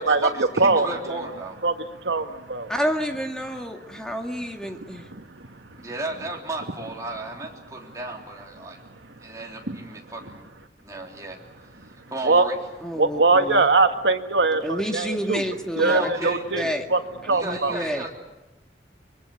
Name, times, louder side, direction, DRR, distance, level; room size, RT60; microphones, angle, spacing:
voice 1, 0.0-1.6 5.8-8.8 9.2-10.5 10.8-11.4 11.9-12.6 15.8-16.5 17.3-18.1, right 2 dB, 20° right, 3.5 m, -34 dB
voice 2, 0.6-1.3 1.6-2.7 5.0-5.8 9.2-9.8 11.8-11.9 12.2-12.4 13.0-15.4 15.8-17.0 17.3-17.8, right 3 dB, 90° right, 1.7 m, -22 dB
voice 3, 2.7-5.1 12.8-13.7 14.6-16.3 16.5-16.9 17.2-18.1, equal, 5° left, 2.0 m, -29 dB
25.0 x 22.5 x 8.3 m
head